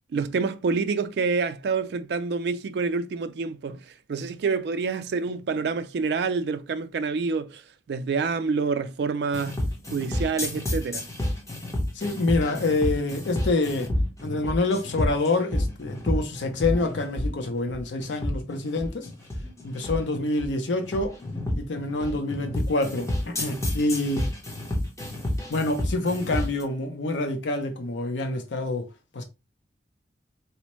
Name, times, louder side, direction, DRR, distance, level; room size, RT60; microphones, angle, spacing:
voice 1, 0.1-7.6 7.9-9.6 9.9-11.0, right 4 dB, 65° right, 0.3 m, -27 dB
sound 1, 9.3-26.6, left 1 dB, 20° left, 0.8 m, -30 dB
voice 2, 11.9-13.9 14.2-19.1 19.6-21.1 21.6-24.3 25.5-28.9 29.1-29.2, left 2 dB, 85° left, 0.6 m, -27 dB
4.1 x 2.1 x 2.9 m
head